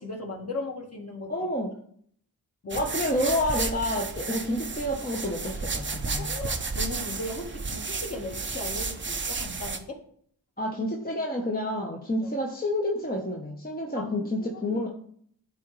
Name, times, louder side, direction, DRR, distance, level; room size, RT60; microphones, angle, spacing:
voice 1, 0.0-1.3 2.6-2.9 6.2-10.0 12.2-12.3 13.9-14.8, left 2 dB, 35° left, 0 dB, 1.6 m, -37 dB
voice 2, 1.3-1.7 2.7-6.2 10.6-14.9, left 1 dB, 20° left, -1 dB, 1.0 m, -29 dB
sound 1, 2.7-9.8, right 4 dB, 30° right, 0.7 m, -32 dB
10.5 x 3.6 x 3.2 m, 0.62 s
cardioid pair, 45°, 41 cm